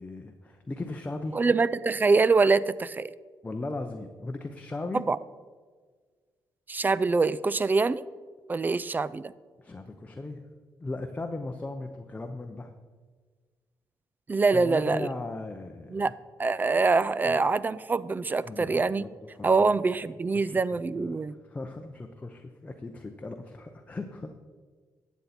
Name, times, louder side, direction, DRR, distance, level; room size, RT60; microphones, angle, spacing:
voice 1, 0.0-1.4 3.4-5.0 9.6-10.5 10.8-12.7 14.5-16.1 17.3-17.4 18.4-19.5 20.3-20.6 20.9-21.2 21.5-24.3, left 2 dB, 20° left, 4 dB, 0.7 m, -37 dB
voice 2, 1.3-3.1 4.9-5.2 6.7-8.0 8.5-9.3 14.3-15.1 15.9-16.1 16.4-19.1 19.4-21.4, right 4 dB, 25° right, 19 dB, 0.3 m, -24 dB
12.0 x 8.2 x 4.2 m, 1.5 s
cardioid pair, 95°, 8 cm